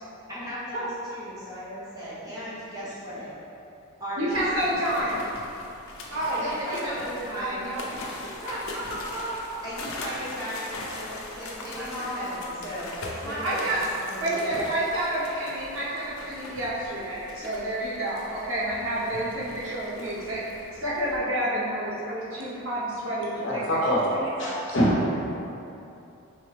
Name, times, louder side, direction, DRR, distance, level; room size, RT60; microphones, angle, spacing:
voice 1, 0.3-3.3 4.0-5.0 6.3-7.7 9.6-13.6 14.1-14.5, equal, 15° right, -11 dB, 1.1 m, -37 dB
voice 2, 4.2-5.2 6.1-7.1 7.3-9.7 11.7-12.3 13.2-13.8 14.2-20.4 20.8-23.6 24.4-24.9, right 1 dB, 70° right, -7 dB, 0.9 m, -30 dB
sound 1, 4.3-21.2, left 2 dB, 70° left, 0.6 m, -41 dB
voice 3, 23.4-24.9, equal, 55° left, -6 dB, 1.0 m, -25 dB
4.1 x 3.2 x 3.3 m, 2.8 s
head